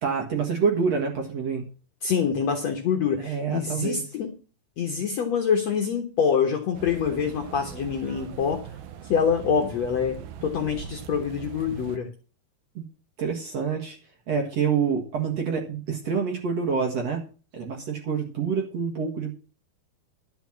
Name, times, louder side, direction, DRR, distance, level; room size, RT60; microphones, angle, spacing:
voice 1, 0.0-1.6 3.2-4.0 12.8-12.9 13.2-14.0 14.3-17.2 17.5-19.3, right 6 dB, 50° right, 2 dB, 2.3 m, -27 dB
voice 2, 2.0-4.4 4.8-8.6 9.1-12.1, left 7 dB, 60° left, 3 dB, 1.9 m, -25 dB
sound 1, 6.7-12.0, right 9 dB, 75° right, 2.7 m, -40 dB
11.5 x 6.2 x 7.4 m, 0.36 s
omnidirectional pair, 4.6 m